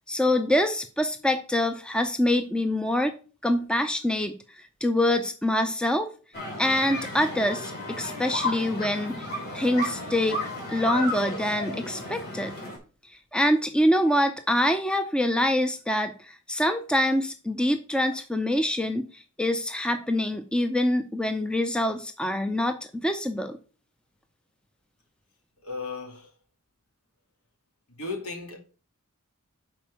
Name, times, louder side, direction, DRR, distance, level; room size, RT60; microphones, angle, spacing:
voice 1, 0.1-3.1 3.4-4.3 4.8-6.1 6.6-9.3 9.5-10.4 10.7-12.5 13.3-19.1 19.4-23.6, left 1 dB, 5° left, 0.4 m, -25 dB
sound 1, 6.3-12.8, left 1 dB, 45° left, 2.9 m, -33 dB
voice 2, 25.6-26.3 28.0-28.6, left 3 dB, 80° left, 2.5 m, -35 dB
6.1 x 4.4 x 6.1 m
head